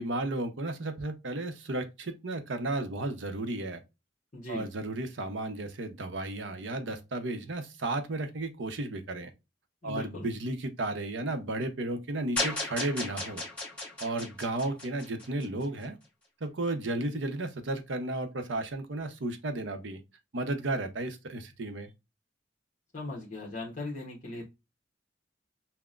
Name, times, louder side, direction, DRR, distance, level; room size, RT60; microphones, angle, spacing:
voice 1, 0.0-3.8 4.5-9.3 9.8-13.4 14.0-16.0 16.4-20.0 20.3-21.9, right 2 dB, 75° right, 0.7 m, -33 dB
voice 2, 4.3-4.7 9.8-10.3 22.9-24.4, left 2 dB, 40° left, 0.9 m, -38 dB
sound 1, 12.4-15.6, left 2 dB, 5° left, 1.1 m, -35 dB
5.7 x 2.1 x 2.4 m
head